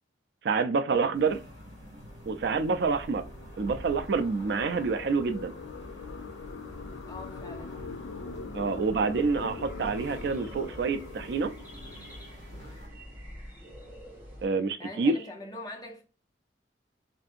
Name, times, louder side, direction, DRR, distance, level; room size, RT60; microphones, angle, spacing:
voice 1, 0.4-1.4 2.3-3.2 3.6-5.5 8.5-11.5 14.4-15.2, right 4 dB, 60° right, 0.3 m, -27 dB
sound 1, 1.1-12.9, equal, 40° right, 1.5 m, -48 dB
sound 2, 2.1-12.7, left 3 dB, 85° left, 0.4 m, -43 dB
voice 2, 7.1-7.8 14.8-16.0, left 2 dB, 20° left, 0.6 m, -42 dB
sound 3, 9.1-14.5, equal, 10° right, 0.9 m, -46 dB
2.6 x 2.5 x 2.4 m
head